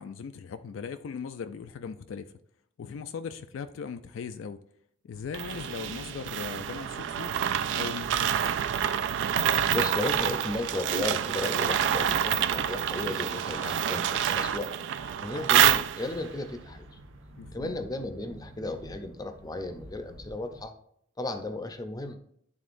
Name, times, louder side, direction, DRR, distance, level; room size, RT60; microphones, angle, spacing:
voice 1, 0.0-2.3 2.8-4.6 5.0-7.3 7.7-8.5 17.4-17.7, left 6 dB, 80° left, 9 dB, 0.3 m, -39 dB
sound 1, 5.1-20.6, right 1 dB, 85° right, 1.1 m, -50 dB
sound 2, 5.3-16.3, right 9 dB, 65° right, 0.3 m, -27 dB
voice 2, 9.7-14.7 15.2-16.9 17.5-20.7 21.2-22.2, left 2 dB, 20° left, 7 dB, 0.5 m, -34 dB
11.0 x 3.6 x 2.5 m, 0.68 s
head